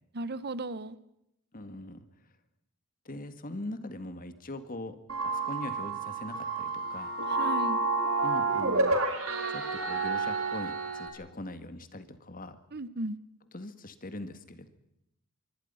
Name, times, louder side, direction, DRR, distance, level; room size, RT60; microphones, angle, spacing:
voice 1, 0.1-1.0 7.3-7.8 12.7-13.2, right 2 dB, 50° right, 16 dB, 1.0 m, -35 dB
voice 2, 1.5-2.1 3.1-5.0 5.2-7.2 8.2-9.0 9.5-12.6 13.5-14.7, left 1 dB, 40° left, 10 dB, 2.0 m, -41 dB
sound 1, 5.1-11.1, right 3 dB, 75° right, 4.5 m, -30 dB
26.0 x 23.5 x 5.7 m, 0.80 s
head